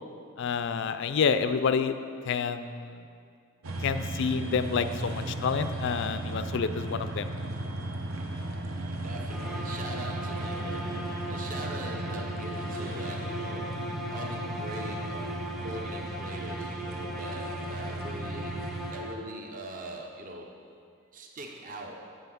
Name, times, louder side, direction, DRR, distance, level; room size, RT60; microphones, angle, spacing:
voice 1, 0.4-2.0 2.2-3.1 3.8-7.3, left 6 dB, 60° left, 10 dB, 0.4 m, -28 dB
sound 1, 3.6-18.9, right 1 dB, 75° right, 0.8 m, -36 dB
voice 2, 8.9-18.5 18.9-20.5 21.1-22.1, right 2 dB, 40° right, 1 dB, 0.6 m, -42 dB
sound 2, 9.3-19.5, equal, ahead, 0.6 m, -38 dB
7.2 x 5.6 x 6.1 m, 2.3 s
head